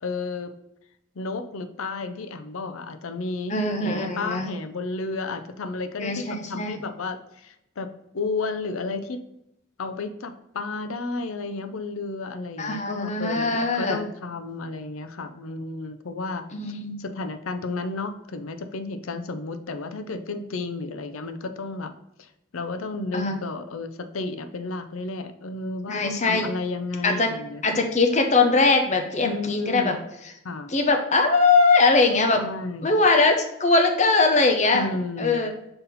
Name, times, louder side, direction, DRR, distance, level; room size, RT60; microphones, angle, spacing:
voice 1, 0.0-0.5 1.2-7.9 8.1-9.2 9.8-21.9 22.2-27.8 29.2-30.0 30.4-30.7 32.4-33.0 34.7-35.4, left 3 dB, 75° left, 9 dB, 0.6 m, -32 dB
voice 2, 3.5-4.5 6.0-6.7 12.6-14.0 16.5-16.9 23.1-23.4 25.9-26.5 27.0-27.3 27.6-29.9 30.7-32.4 32.8-33.3 33.6-34.8 35.2-35.5, left 3 dB, 35° left, 4 dB, 0.7 m, -21 dB
5.7 x 4.1 x 4.1 m, 0.83 s
head